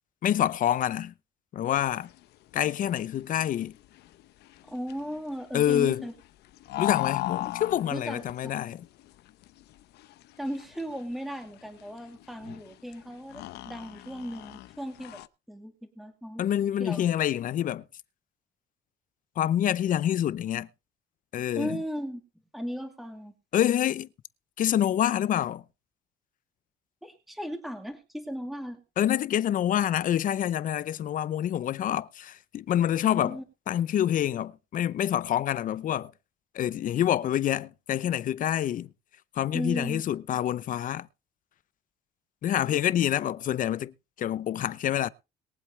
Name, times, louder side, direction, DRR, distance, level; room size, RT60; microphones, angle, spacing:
voice 1, 0.2-1.1 1.5-2.1 2.5-3.8 5.5-6.1 6.8-8.8 16.4-17.8 19.4-20.7 21.3-21.8 23.5-24.1 24.6-25.6 29.0-33.4 33.7-36.1 36.5-38.9 39.3-41.1 42.4-45.1, left 11 dB, 50° left, 0.7 m, -27 dB
sound 1, 1.8-15.3, left 15 dB, 80° left, 0.9 m, -38 dB
voice 2, 4.6-6.1 7.9-8.2 10.4-15.2 15.5-16.5 16.8-17.0 21.5-22.2 22.5-23.3 27.0-28.8 33.1-33.4 39.5-40.0, equal, ahead, 2.3 m, -36 dB
22.5 x 7.9 x 3.3 m
cardioid pair, 110°, 17 cm